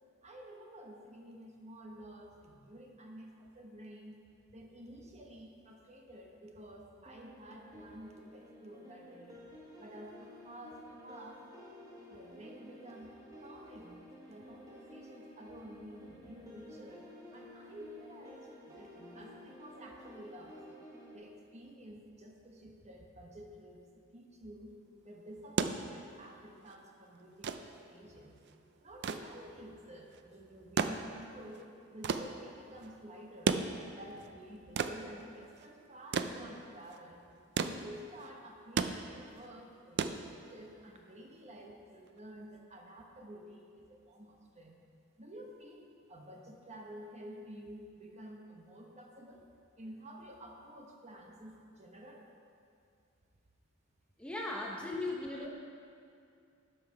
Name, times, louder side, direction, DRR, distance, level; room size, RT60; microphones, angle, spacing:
voice 1, 0.2-4.2 4.5-9.4 9.8-11.4 12.1-14.0 14.3-20.6 21.1-24.8 25.0-28.4 28.8-33.6 33.9-37.2 37.6-44.8 45.2-49.4 49.8-52.3 55.2-55.4, right 1 dB, 35° right, 1 dB, 1.0 m, -51 dB
sound 1, 7.1-21.2, equal, 15° right, 1.5 m, -53 dB
sound 2, 25.3-40.8 42.1-42.2, right 5 dB, 55° right, 0.4 m, -37 dB
voice 2, 54.2-55.5, left 2 dB, 5° left, -2 dB, 0.7 m, -37 dB
12.0 x 5.7 x 4.7 m, 2.4 s
head